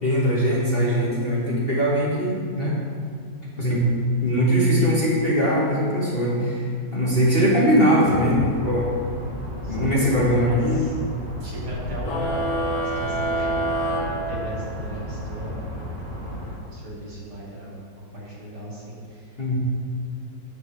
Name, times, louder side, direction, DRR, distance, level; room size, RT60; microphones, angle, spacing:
voice 1, 0.0-2.7 3.4-3.8 4.2-8.9 9.7-10.9 19.4-19.6, equal, 35° left, -6 dB, 1.3 m, -21 dB
voice 2, 7.0-7.3 9.6-10.0 10.4-11.0 11.4-15.6 16.0-16.2 16.6-17.8 18.1-19.6, right 1 dB, 65° right, -7 dB, 2.6 m, -37 dB
sound 1, 8.0-16.5, left 1 dB, 30° right, 1.8 m, -33 dB
sound 2, 12.0-15.0, right 1 dB, 55° left, 0.9 m, -27 dB
8.8 x 8.0 x 3.2 m, 2.1 s
omnidirectional pair, 2.0 m